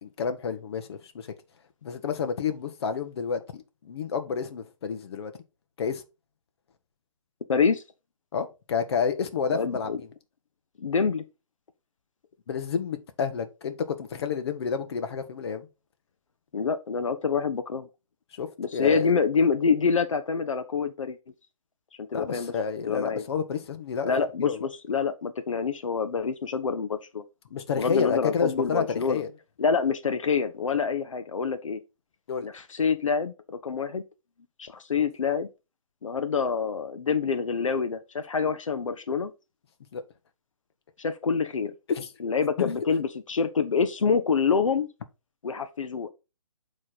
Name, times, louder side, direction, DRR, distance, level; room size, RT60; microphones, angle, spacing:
voice 1, 0.0-1.3 1.8-5.3 5.8-6.0 8.3-10.0 12.5-15.7 18.4-19.1 22.1-24.7 27.5-29.3 32.3-32.5 39.9-40.0 41.9-42.1 42.6-42.7, left 6 dB, 50° left, 1.0 m, -30 dB
voice 2, 7.5-7.8 9.5-10.0 10.8-11.2 16.5-17.9 18.6-21.2 22.0-22.5 22.9-23.2 24.0-27.2 27.8-29.2 29.6-31.8 32.4-34.0 34.6-35.5 36.0-39.3 41.0-41.7 42.2-44.9 45.4-46.1, left 5 dB, 70° left, 0.8 m, -26 dB
8.5 x 3.2 x 4.1 m
figure-of-eight pair, 135°, 17 cm